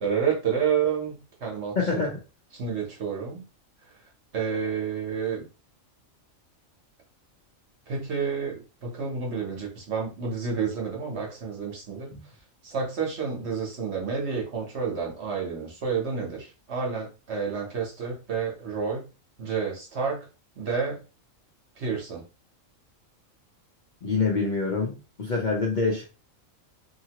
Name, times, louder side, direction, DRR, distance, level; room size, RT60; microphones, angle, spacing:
voice 1, 0.0-2.0 2.5-3.4 4.3-5.4 7.9-12.2 12.6-19.1 19.4-20.3 20.6-21.0 21.8-22.2, right 6 dB, 55° right, -1 dB, 1.2 m, -29 dB
voice 2, 1.8-2.2 12.1-12.2 24.0-26.1, left 4 dB, 45° left, -2 dB, 0.7 m, -26 dB
2.8 x 2.6 x 2.9 m, 0.31 s
omnidirectional pair, 1.4 m